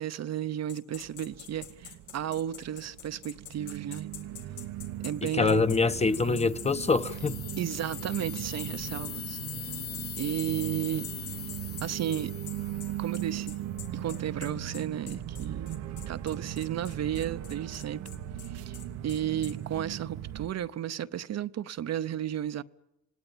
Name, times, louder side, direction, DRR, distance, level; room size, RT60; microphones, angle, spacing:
voice 1, 0.0-4.1 5.0-5.6 7.6-9.4 10.2-11.1 11.8-12.3 13.0-13.6 13.9-18.0 18.5-18.8 19.0-22.6, right 10 dB, 60° right, 0.8 m, -33 dB
sound 1, 0.7-8.7 9.0-9.2 9.5-19.6, left 9 dB, 80° left, 2.3 m, -46 dB
sound 2, 1.0-20.5, right 12 dB, 90° right, 1.1 m, -39 dB
voice 2, 5.2-7.4, left 4 dB, 20° left, 1.0 m, -25 dB
sound 3, 5.7-13.6, left 10 dB, 50° left, 0.9 m, -42 dB
27.0 x 17.5 x 9.0 m
cardioid pair, 90°, 30 cm